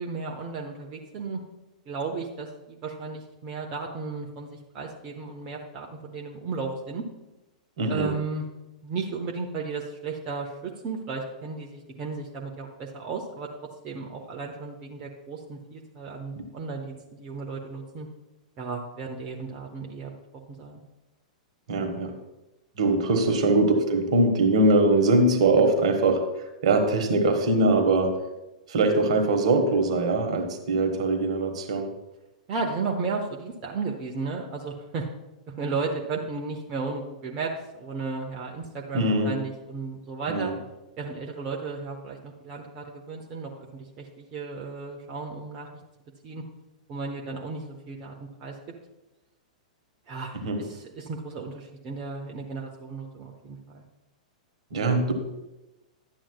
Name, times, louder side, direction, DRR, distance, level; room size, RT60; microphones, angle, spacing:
voice 1, 0.0-1.4 1.9-7.0 7.9-8.5 8.8-13.5 13.8-18.1 18.6-20.1 20.5-20.8 32.5-35.1 35.5-40.5 41.0-45.7 46.2-46.4 46.9-48.5 50.1-53.8, right 4 dB, 30° right, 0 dB, 1.0 m, -34 dB
voice 2, 7.8-8.1 21.7-22.1 22.8-26.2 26.6-28.2 28.7-31.9 38.9-39.3 40.3-40.5 50.4-50.6 54.7-55.1, right 2 dB, 55° right, 4 dB, 1.4 m, -22 dB
12.0 x 8.9 x 2.3 m, 0.99 s
figure-of-eight pair, 100°, 4 cm